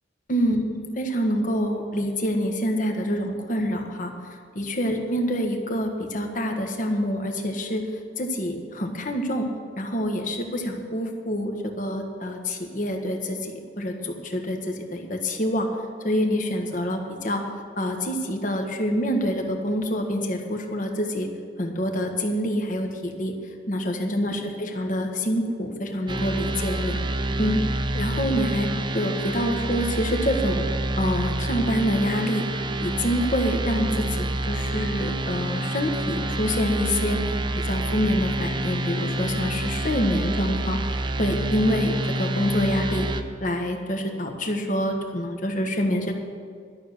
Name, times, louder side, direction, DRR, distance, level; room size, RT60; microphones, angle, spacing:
voice 1, 0.3-4.1 4.5-7.8 8.2-9.4 9.8-15.7 16.0-17.4 17.8-21.3 21.6-23.3 23.7-27.0 27.4-27.6 27.9-28.7 28.9-30.6 31.0-32.4 32.8-37.3 37.6-40.8 41.2-43.1 43.4-46.1, equal, 50° left, 4 dB, 1.4 m, -26 dB
sound 1, 26.1-43.2, right 1 dB, 25° right, 0.7 m, -27 dB
12.0 x 6.6 x 9.3 m, 2.1 s
head